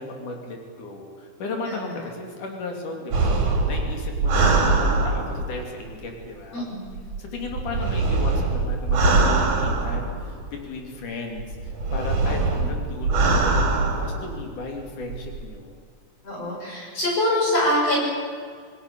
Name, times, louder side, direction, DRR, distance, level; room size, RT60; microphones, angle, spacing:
voice 1, 0.0-6.7 7.2-15.7, left 3 dB, 80° left, 2 dB, 4.5 m, -35 dB
voice 2, 1.7-2.1 6.5-7.0 12.2-12.6 16.2-18.0, left 1 dB, 50° left, -3 dB, 8.2 m, -25 dB
sound 1, 3.1-5.6 6.9-10.5 11.4-14.3 15.0-15.4, right 3 dB, 80° right, 4.5 m, -22 dB
28.0 x 19.0 x 7.0 m, 2.1 s
omnidirectional pair, 3.5 m